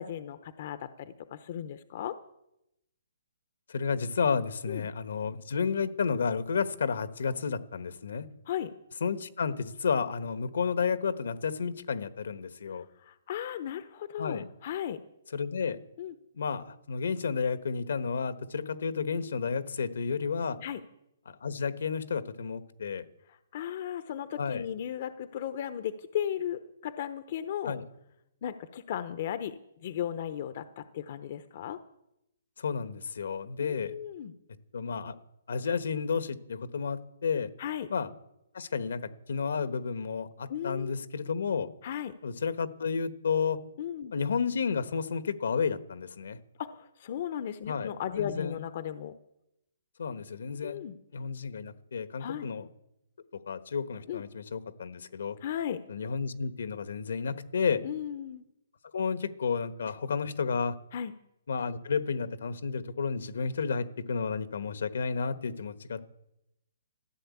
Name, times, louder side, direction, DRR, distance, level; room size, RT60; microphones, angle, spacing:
voice 1, 0.0-2.2 4.7-4.9 8.5-8.7 12.7-15.0 16.0-16.1 20.6-20.8 23.3-27.7 28.4-31.8 33.6-34.3 37.6-37.9 40.5-40.9 41.8-42.1 43.8-44.1 46.6-49.1 50.6-50.9 52.2-52.5 54.1-54.2 55.4-55.8 57.8-58.5 60.9-61.1, left 10 dB, 45° left, 12 dB, 0.8 m, -36 dB
voice 2, 3.7-8.3 9.0-12.9 14.2-14.4 15.3-15.8 16.3-20.6 21.3-23.1 24.4-24.7 27.6-27.8 32.6-33.9 34.7-35.1 35.5-37.5 37.9-38.1 38.5-41.7 42.2-43.6 44.1-46.4 47.7-48.6 50.0-50.8 51.1-52.7 53.5-55.4 55.9-57.8 58.9-60.7 61.5-66.0, left 5 dB, 75° left, 12 dB, 1.2 m, -31 dB
14.5 x 10.5 x 8.4 m, 0.85 s
hypercardioid pair, 160°, 0 cm